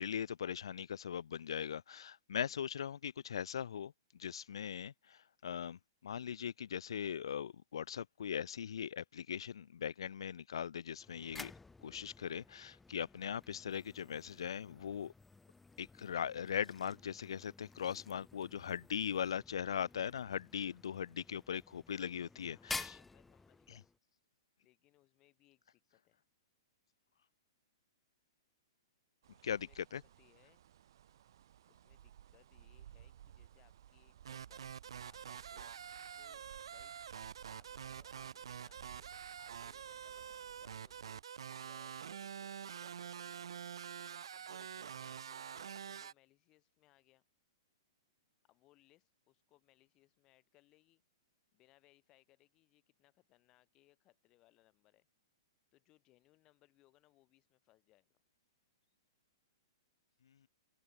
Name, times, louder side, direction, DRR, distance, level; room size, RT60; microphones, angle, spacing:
voice 1, 0.0-3.9 4.2-11.5 11.8-15.1 15.8-23.0 23.7-23.8 29.4-30.0, left 8 dB, 85° left, 0.5 m, -40 dB
sound 1, 11.0-24.0, left 3 dB, 5° left, 0.4 m, -52 dB
voice 2, 22.5-23.9 24.6-26.2 29.5-29.8 30.2-30.6 31.7-34.7 35.0-35.8 36.1-36.9 37.5-43.7 44.3-47.2 48.4-51.0 51.5-55.1 55.7-58.2, left 18 dB, 25° left, 3.4 m, -70 dB
sound 2, 29.2-41.2, right 11 dB, 60° right, 1.7 m, -59 dB
sound 3, 34.3-46.1, right 8 dB, 85° right, 1.1 m, -47 dB
open air
hypercardioid pair, 165°, 3 cm